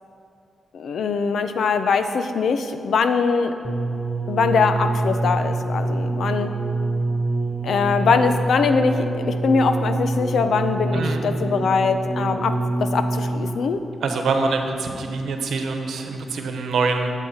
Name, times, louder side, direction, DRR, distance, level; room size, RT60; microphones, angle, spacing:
voice 1, 0.7-3.5 4.3-6.5 7.6-13.8, left 5 dB, 70° left, 9 dB, 0.6 m, -22 dB
sound 1, 3.6-13.8 14.6-14.7, right 2 dB, 30° right, 0.8 m, -25 dB
voice 2, 10.9-11.2 14.0-17.1, right 4 dB, 80° right, 4 dB, 1.0 m, -24 dB
12.5 x 8.2 x 4.3 m, 2.7 s
wide cardioid pair, 135°, 0 cm